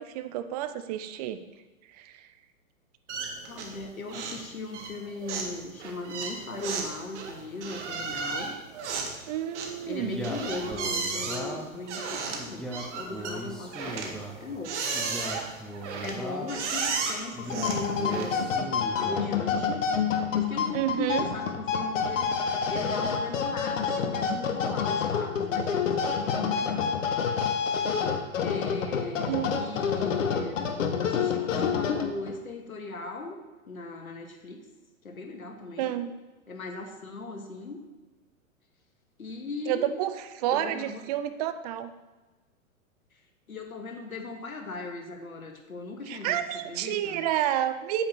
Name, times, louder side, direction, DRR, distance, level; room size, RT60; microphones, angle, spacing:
voice 1, 0.0-1.4 2.0-2.3 9.3-10.2 20.7-21.3 29.3-29.5 35.8-36.1 39.7-41.9 46.1-48.1, right 11 dB, 30° right, 11 dB, 0.5 m, -30 dB
sound 1, 3.1-3.8 4.1-4.5 4.7-18.5, right 4 dB, 55° right, 1.6 m, -34 dB
voice 2, 3.5-8.5 9.9-12.7 12.9-14.9 16.0-18.6 18.9-19.9 20.3-22.3 22.7-26.9 28.4-30.7 31.0-33.4 33.7-34.6 35.0-35.9 36.5-37.9 39.2-39.9 40.5-41.0 43.5-46.4 46.6-47.3, left 2 dB, 90° left, 4 dB, 1.4 m, -38 dB
Male speech man speaking, 10.0-11.8 12.4-14.4 14.9-16.6 17.3-19.3, equal, ahead, 0.8 m, -38 dB
sound 2, 17.4-32.4, left 6 dB, 65° left, 1.1 m, -28 dB
8.6 x 8.0 x 3.1 m, 1.2 s
hypercardioid pair, 115°, 41 cm